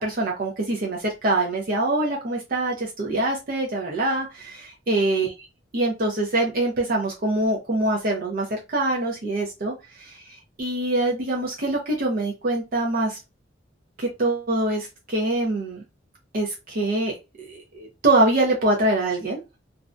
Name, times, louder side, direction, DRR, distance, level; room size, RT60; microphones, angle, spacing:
voice 1, 0.0-5.3 5.7-13.2 14.0-15.8 16.3-19.4, right 2 dB, 50° right, -2 dB, 0.6 m, -24 dB
2.5 x 2.1 x 2.4 m, 0.25 s
head